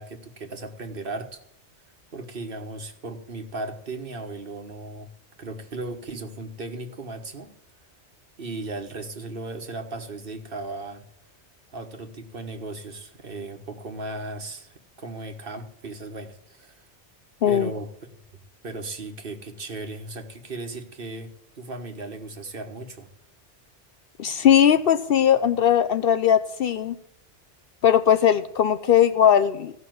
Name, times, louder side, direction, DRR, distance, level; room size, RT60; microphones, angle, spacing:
voice 1, 0.0-1.4 2.1-5.1 5.4-7.5 8.4-11.0 11.7-16.9 17.5-17.9 18.6-23.1, right 2 dB, 50° right, 5 dB, 1.5 m, -36 dB
voice 2, 24.2-27.0 27.8-29.7, left 9 dB, 60° left, 11 dB, 0.7 m, -19 dB
15.5 x 5.9 x 7.7 m, 0.73 s
omnidirectional pair, 1.2 m